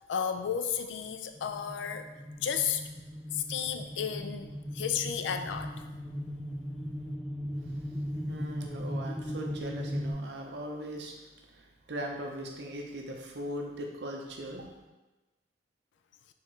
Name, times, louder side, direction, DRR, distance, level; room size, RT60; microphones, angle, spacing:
voice 1, 0.0-2.0 2.4-2.8 3.3-5.8, left 8 dB, 85° left, 8 dB, 0.3 m, -33 dB
sound 1, 1.3-10.1, equal, ahead, 0.4 m, -38 dB
voice 2, 8.3-11.1 11.5-14.7, equal, 65° right, 1 dB, 0.7 m, -39 dB
4.3 x 3.5 x 3.1 m, 1.1 s
head